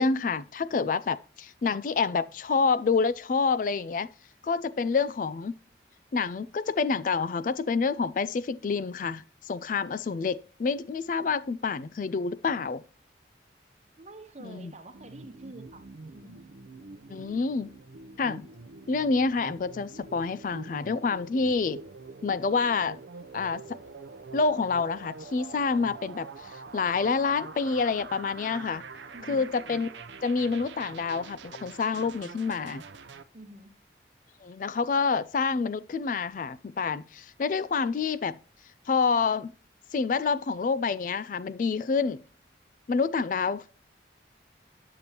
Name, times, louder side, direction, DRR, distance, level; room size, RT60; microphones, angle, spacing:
voice 1, 0.0-4.1 4.4-5.6 6.1-12.8 14.4-14.7 17.1-17.7 18.2-18.5 18.9-21.8 22.2-23.0 23.3-23.6 24.3-28.8 29.3-29.9 30.2-32.8 34.4-38.4 38.9-39.5 39.9-42.2 42.9-43.7, left 4 dB, 45° left, 0.3 m, -28 dB
voice 2, 14.0-16.5 29.1-29.5 33.3-33.8, right 2 dB, 40° right, 1.0 m, -47 dB
sound 1, 14.9-33.2, right 4 dB, 85° right, 0.6 m, -45 dB
9.7 x 6.8 x 2.9 m
head